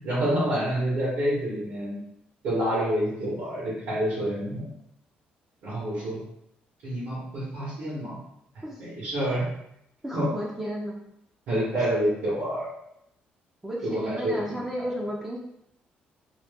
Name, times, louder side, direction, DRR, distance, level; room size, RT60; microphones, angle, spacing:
voice 1, 0.0-2.0 2.4-4.7 5.6-6.2 6.8-8.2 8.8-9.4 10.1-10.3 11.5-12.7 13.8-14.8, right 1 dB, 80° right, -9 dB, 1.2 m, -28 dB
voice 2, 10.0-11.0 11.9-12.0 13.6-15.4, equal, 10° right, -3 dB, 0.4 m, -33 dB
2.9 x 2.1 x 3.4 m, 0.77 s
cardioid pair, 130°, 3 cm